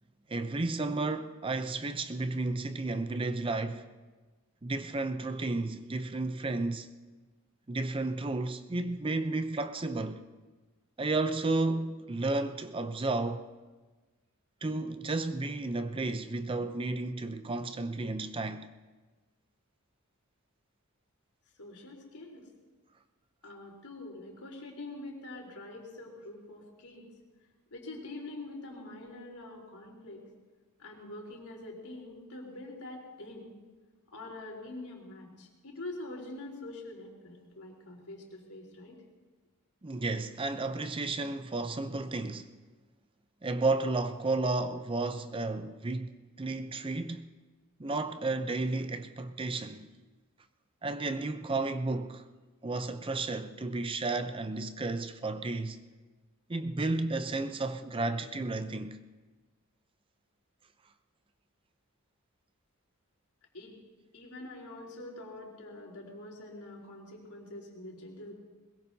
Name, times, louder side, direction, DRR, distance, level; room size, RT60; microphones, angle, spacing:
voice 1, 0.3-3.9 4.6-6.9 7.7-10.2 11.0-13.5 14.6-18.7 39.8-42.5 43.4-47.3 47.8-49.9 50.8-52.2 52.6-55.8 56.5-59.0, right 2 dB, 25° right, 0.5 m, -32 dB
voice 2, 21.6-22.5 23.4-27.1 27.7-30.2 30.8-33.5 34.1-39.0 63.5-63.8 64.1-68.3, left 2 dB, 85° left, 3.9 m, -45 dB
21.5 x 21.5 x 2.7 m
head